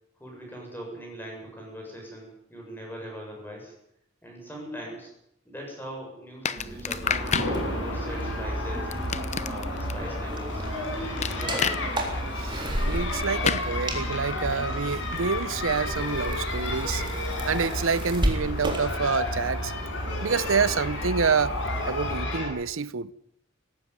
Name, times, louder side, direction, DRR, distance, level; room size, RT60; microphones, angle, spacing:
voice 1, 0.2-3.7 4.2-5.1 5.4-7.4 7.7-9.0 9.4-10.7 11.0-11.9, equal, 10° left, 7.5 m, -41 dB
sound 1, 6.5-7.5 8.9-9.9 11.2-11.8 13.4-13.7, left 6 dB, 35° left, 0.8 m, -28 dB
sound 2, 6.6-22.2, right 1 dB, 25° right, 3.7 m, -35 dB
sound 3, 7.0-22.5, left 1 dB, 65° left, 7.9 m, -31 dB
voice 2, 12.4-17.0 17.5-19.7 20.2-21.5 21.9-23.1, right 5 dB, 80° right, 0.7 m, -27 dB
18.5 x 16.0 x 9.5 m
head